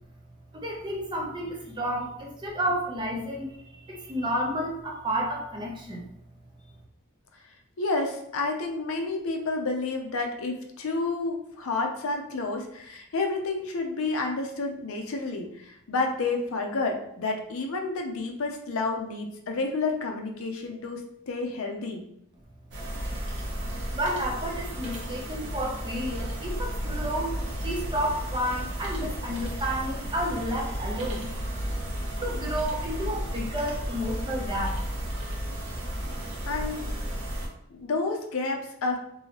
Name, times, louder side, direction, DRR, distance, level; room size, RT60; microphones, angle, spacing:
voice 1, 0.5-3.6 3.8-6.1 23.9-31.3 32.2-34.8, equal, 20° right, -1 dB, 0.5 m, -31 dB
voice 2, 7.8-22.0 36.5-36.9 37.7-39.0, left 3 dB, 65° left, 3 dB, 0.5 m, -30 dB
sound 1, 22.7-37.5, equal, 50° right, 0.7 m, -33 dB
3.0 x 2.7 x 2.8 m, 0.73 s
head